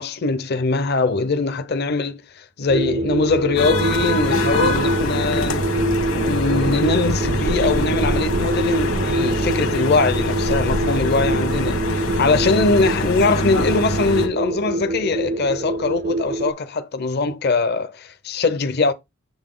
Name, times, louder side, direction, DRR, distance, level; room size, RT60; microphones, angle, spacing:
voice 1, 0.0-5.7 6.2-18.9, left 3 dB, 50° left, 0.6 m, -22 dB
sound 1, 2.7-16.5, right 2 dB, 40° right, 0.4 m, -25 dB
sound 2, 3.6-14.3, left 1 dB, 65° left, 1.4 m, -24 dB
7.2 x 4.0 x 3.7 m
head